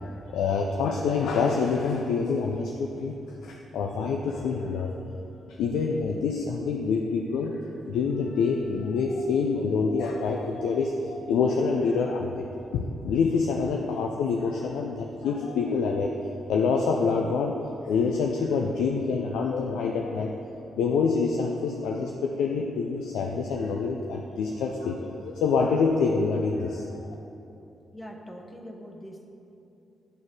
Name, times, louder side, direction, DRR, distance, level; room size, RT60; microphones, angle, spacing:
voice 1, 0.0-4.9 5.5-12.4 12.7-16.1 16.5-17.6 17.8-20.3 20.8-26.9, left 5 dB, 75° left, 1 dB, 0.4 m, -26 dB
voice 2, 27.9-29.3, equal, 20° left, 1 dB, 1.2 m, -42 dB
10.5 x 4.2 x 4.7 m, 2.9 s
hypercardioid pair, 45°, 0 cm